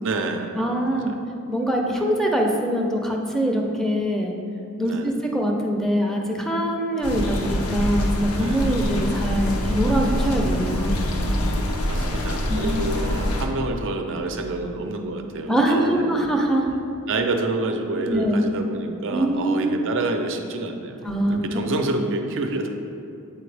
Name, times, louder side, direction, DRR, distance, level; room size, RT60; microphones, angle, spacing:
voice 1, 0.0-0.6 0.9-1.1 4.8-5.1 8.3-8.8 11.9-16.3 17.1-22.7, right 2 dB, 60° right, 4 dB, 0.5 m, -28 dB
voice 2, 0.6-1.1 1.5-4.4 4.8-11.1 12.5-12.9 15.5-16.7 18.1-18.4 19.1-19.7 21.0-21.4, equal, ahead, 0 dB, 0.5 m, -23 dB
sound 1, 7.0-13.5, equal, 70° left, 0.6 m, -25 dB
7.7 x 4.3 x 3.3 m, 2.7 s
head